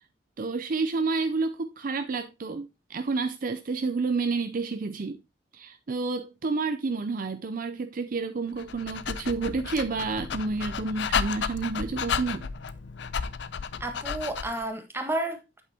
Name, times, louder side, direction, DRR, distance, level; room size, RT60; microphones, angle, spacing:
voice 1, 0.4-5.2 5.5-12.5, right 4 dB, 50° right, 0.5 m, -30 dB
Dog, 8.5-14.6, left 6 dB, 70° left, 0.5 m, -32 dB
voice 2, 13.8-15.6, right 1 dB, 15° right, 1.5 m, -31 dB
8.5 x 7.9 x 2.8 m
head